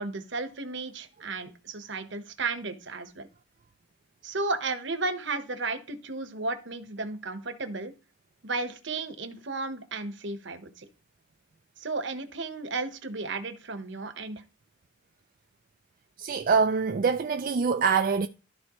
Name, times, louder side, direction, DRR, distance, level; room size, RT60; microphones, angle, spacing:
voice 1, 0.0-3.3 4.2-7.9 8.4-10.8 11.8-14.4, right 3 dB, 60° right, 1.1 m, -34 dB
voice 2, 16.2-18.3, right 5 dB, 45° right, 0.4 m, -24 dB
13.5 x 4.5 x 3.1 m
head